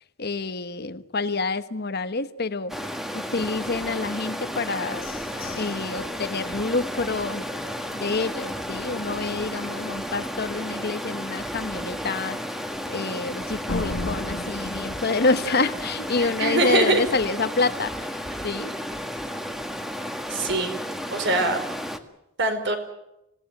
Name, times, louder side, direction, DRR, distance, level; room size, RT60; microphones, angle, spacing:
voice 1, 0.2-2.7 3.1-5.1 5.5-7.7 7.9-12.4 12.9-18.8, left 3 dB, 55° left, 11 dB, 1.2 m, -27 dB
Stream, 2.7-22.0, equal, ahead, 1.7 m, -33 dB
sound 1, 4.9-8.3 8.7-8.8 9.2-9.6 10.0-10.1 10.6-10.7 13.7-16.3, left 2 dB, 85° left, 1.5 m, -38 dB
voice 2, 16.2-17.0 20.3-20.7 21.1-21.6 22.4-22.8, right 2 dB, 60° right, 7 dB, 4.7 m, -23 dB
26.0 x 17.5 x 9.1 m, 0.87 s
head